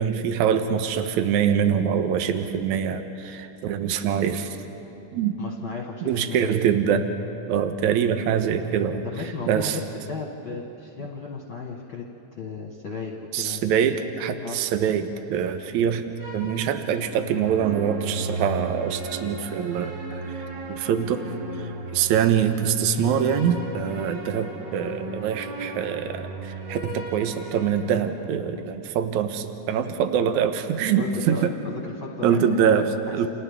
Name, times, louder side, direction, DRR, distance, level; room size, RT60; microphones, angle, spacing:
voice 1, 0.0-4.6 5.1-5.3 6.0-7.1 7.5-9.1 9.5-9.8 13.3-21.2 21.5-31.5 32.2-33.3, right 8 dB, 75° right, 8 dB, 2.2 m, -24 dB
voice 2, 5.4-6.5 9.0-9.8 10.1-12.0 12.4-13.6 14.4-14.6 30.9-33.3, left 4 dB, 50° left, -1 dB, 1.7 m, -35 dB
sound 1, 16.2-28.3, right 2 dB, 60° right, 4.3 m, -36 dB
29.5 x 29.0 x 3.6 m, 2.9 s
omnidirectional pair, 3.6 m